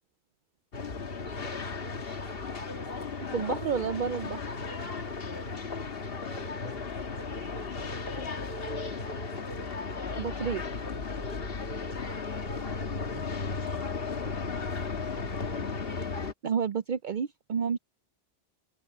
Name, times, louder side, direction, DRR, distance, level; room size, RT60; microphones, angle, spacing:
sound 1, 0.7-16.3, left 4 dB, 60° left, 1.6 m, -35 dB
voice 1, 3.3-4.4 10.2-10.6 16.4-17.8, right 6 dB, 55° right, 0.7 m, -30 dB
voice 2, 6.1-7.0 7.8-9.0 12.7-14.3 15.5-15.6, left 1 dB, 35° left, 4.5 m, -48 dB
open air
omnidirectional pair, 1.1 m